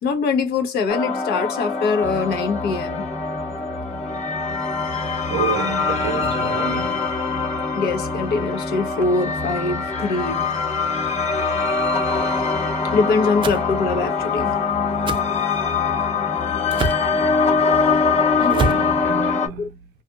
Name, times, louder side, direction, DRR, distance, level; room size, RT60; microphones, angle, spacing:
voice 1, 0.0-3.0 7.4-10.4 12.8-14.5 18.4-18.8 19.6-19.7, left 4 dB, 70° left, 0.8 m, -23 dB
sound 1, 0.9-19.5, left 5 dB, 40° left, 0.9 m, -23 dB
sound 2, 2.0-19.2, equal, 10° left, 0.8 m, -35 dB
voice 2, 5.3-7.2 18.1-20.0, right 8 dB, 85° right, 0.6 m, -30 dB
sound 3, 13.4-13.6 15.1-15.2 16.7-17.1 18.5-18.9, right 3 dB, 30° right, 0.4 m, -24 dB
2.7 x 2.4 x 2.3 m
cardioid pair, 110°, 17 cm